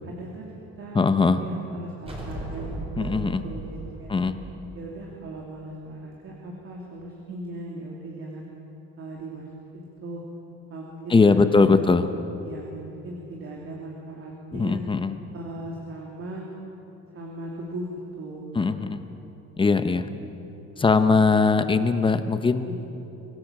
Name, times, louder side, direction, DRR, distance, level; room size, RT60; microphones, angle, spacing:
voice 1, 0.0-4.1 4.7-8.5 9.0-9.5 9.7-10.2 10.7-11.7 12.4-14.8 15.3-16.5 17.1-17.9 18.2-18.7 20.7-21.1 22.7-22.8, right 2 dB, 45° right, -2 dB, 3.0 m, -38 dB
voice 2, 0.9-1.4 3.0-3.4 4.1-4.4 11.1-12.1 14.5-15.2 18.5-19.0 19.6-20.1 20.8-22.7, left 4 dB, 15° left, 10 dB, 0.8 m, -20 dB
sound 1, 2.1-5.5, right 2 dB, 20° right, 4.7 m, -37 dB
25.5 x 17.5 x 7.5 m, 3.0 s
cardioid pair, 160°, 29 cm